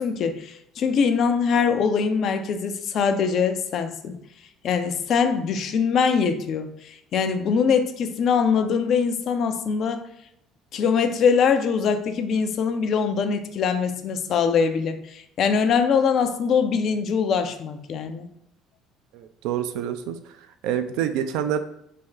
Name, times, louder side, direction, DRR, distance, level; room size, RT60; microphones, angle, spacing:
voice 1, 0.0-4.2 4.6-10.1 10.7-18.3, left 6 dB, 50° left, 8 dB, 0.4 m, -23 dB
voice 2, 19.1-20.2 20.6-21.6, right 9 dB, 60° right, 8 dB, 0.3 m, -26 dB
3.5 x 2.9 x 3.3 m, 0.78 s
figure-of-eight pair, 55°, 0 cm